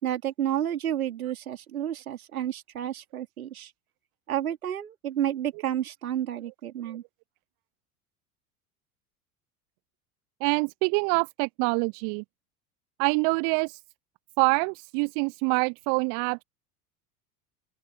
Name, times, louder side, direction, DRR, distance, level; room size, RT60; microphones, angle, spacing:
voice 1, 0.0-3.7 4.3-7.0, right 11 dB, 70° right, 3.3 m, -30 dB
voice 2, 10.4-12.2 13.0-13.8 14.4-16.4, right 40 dB or more, 50° right, 1.0 m, -25 dB
open air
figure-of-eight pair, 75°, 44 cm